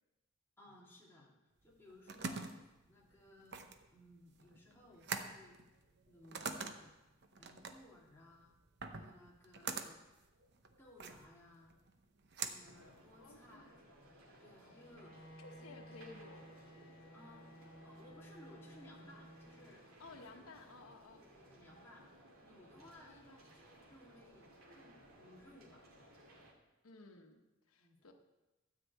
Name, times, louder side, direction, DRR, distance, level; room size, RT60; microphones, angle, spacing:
voice 1, 0.6-1.3 1.6-3.6 3.9-5.6 6.1-6.9 7.4-8.5 8.9-10.0 10.8-11.8 12.4-13.8 14.4-15.3 15.6-16.0 17.1-17.5 17.8-20.4 21.2-22.1 22.4-25.9 27.8-28.0, left 1 dB, 10° left, -4 dB, 2.2 m, -60 dB
sound 1, 1.6-13.6, right 5 dB, 50° right, 0.8 m, -46 dB
sound 2, 12.6-26.5, right 1 dB, 85° right, 2.4 m, -61 dB
voice 2, 13.2-13.7 15.4-16.5 20.0-21.2 22.9-23.4 26.8-28.1, left 3 dB, 90° left, 4 dB, 1.1 m, -56 dB
Bowed string instrument, 14.8-20.1, equal, 65° left, 1.0 m, -57 dB
13.0 x 5.0 x 8.3 m, 1.0 s
head